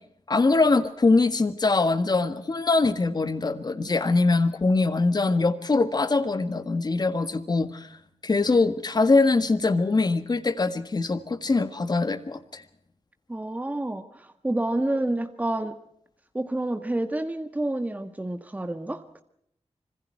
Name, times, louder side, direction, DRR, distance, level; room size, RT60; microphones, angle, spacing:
voice 1, 0.3-7.9 8.2-12.6, left 3 dB, 40° left, 11 dB, 1.7 m, -23 dB
voice 2, 13.3-15.8 16.3-19.0, right 1 dB, 15° right, 8 dB, 1.4 m, -29 dB
26.0 x 25.5 x 4.6 m, 0.71 s
wide cardioid pair, 150°, 11 cm